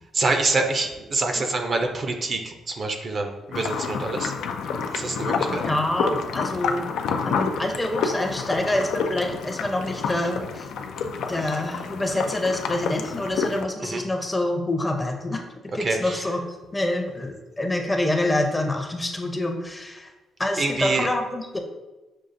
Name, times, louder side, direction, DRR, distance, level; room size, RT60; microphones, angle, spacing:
voice 1, 0.1-4.3 4.9-5.6 13.8-14.0 15.8-16.2 20.6-21.1, right 3 dB, 45° right, 4 dB, 0.5 m, -26 dB
sound 1, 3.5-13.6, left 5 dB, 80° left, 0.3 m, -29 dB
voice 2, 5.5-6.9 7.3-10.7 11.3-15.4 15.7-16.4 16.7-20.1 20.4-21.6, left 1 dB, 15° left, 3 dB, 0.6 m, -26 dB
6.3 x 2.4 x 2.5 m, 1.1 s
cardioid pair, 90°, 0 cm